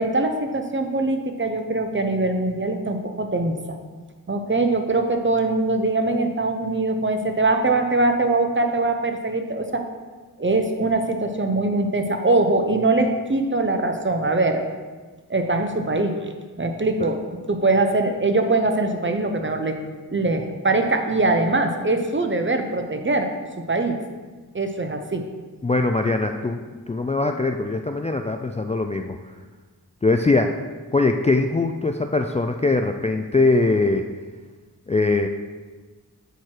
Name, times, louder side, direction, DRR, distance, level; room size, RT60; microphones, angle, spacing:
voice 1, 0.0-3.6 4.3-9.8 10.4-14.6 15.3-16.1 16.6-17.2 17.5-19.8 20.1-23.3 23.7-24.0 24.5-25.2, right 2 dB, 30° right, 5 dB, 0.8 m, -22 dB
voice 2, 25.6-29.2 30.0-30.5 30.9-34.1 34.9-35.3, left 3 dB, 20° left, 5 dB, 0.4 m, -21 dB
8.0 x 4.4 x 4.7 m, 1.4 s
cardioid pair, 45°, 37 cm